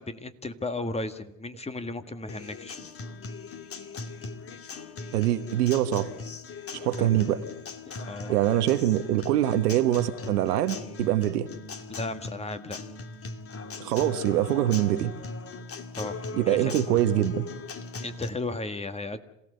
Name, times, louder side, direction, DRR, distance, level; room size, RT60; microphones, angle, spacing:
voice 1, 0.0-2.9 7.0-7.3 7.9-8.3 11.9-12.8 16.0-16.2 16.5-16.8 18.0-19.2, left 2 dB, 15° left, 1.8 m, -35 dB
Acoustic guitar, 2.3-18.3, left 3 dB, 30° left, 2.4 m, -39 dB
voice 2, 5.1-6.1 6.7-7.4 8.3-11.5 13.8-15.1 16.3-17.5, right 13 dB, 80° right, 1.6 m, -24 dB
27.0 x 17.0 x 6.8 m
hypercardioid pair, 90°, 46 cm